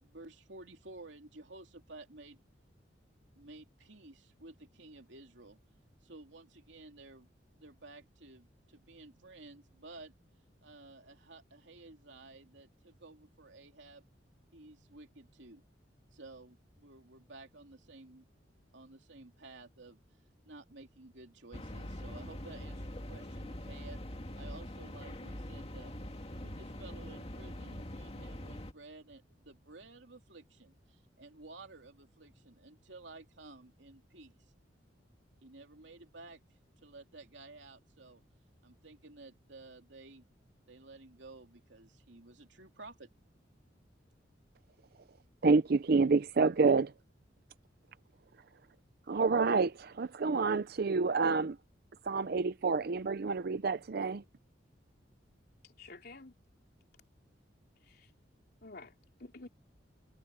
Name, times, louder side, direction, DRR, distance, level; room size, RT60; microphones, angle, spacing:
voice 1, 0.0-2.4 3.4-5.6 6.0-7.3 7.5-10.1 10.6-14.0 14.5-15.6 16.1-18.3 18.7-20.0 20.4-24.0 24.3-25.9 26.4-34.3 35.4-36.4 36.8-38.2 38.6-40.2 40.7-43.1, right 2 dB, 80° right, 2.8 m, -53 dB
sound 1, 21.5-28.7, left 1 dB, 35° left, 2.4 m, -43 dB
voice 2, 45.4-46.9 49.1-51.6 52.0-54.2, right 4 dB, 55° right, 0.5 m, -28 dB
voice 3, 55.6-56.3 57.8-58.1 58.6-58.9 59.2-59.5, left 3 dB, 60° left, 3.5 m, -50 dB
head